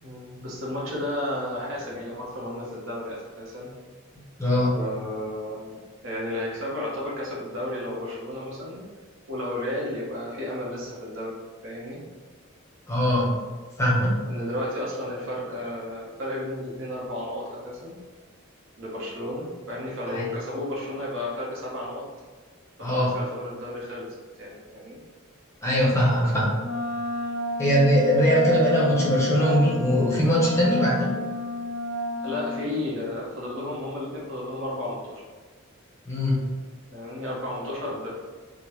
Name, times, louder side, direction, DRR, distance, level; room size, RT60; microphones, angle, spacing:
voice 1, 0.0-3.7 4.7-5.8 6.0-8.8 9.3-11.3 11.6-12.0 14.3-17.9 18.8-22.0 22.8-25.0 32.2-35.2 36.9-38.1, left 1 dB, 65° right, -5 dB, 0.9 m, -33 dB
voice 2, 4.4-4.7 12.9-13.4 13.8-14.1 20.1-20.2 22.8-23.1 25.6-26.5 27.6-31.1 36.1-36.4, equal, 15° left, -5 dB, 0.6 m, -21 dB
Wind instrument woodwind instrument, 26.6-32.6, left 1 dB, 65° left, 0.5 m, -31 dB
3.4 x 2.1 x 3.0 m, 1.4 s
head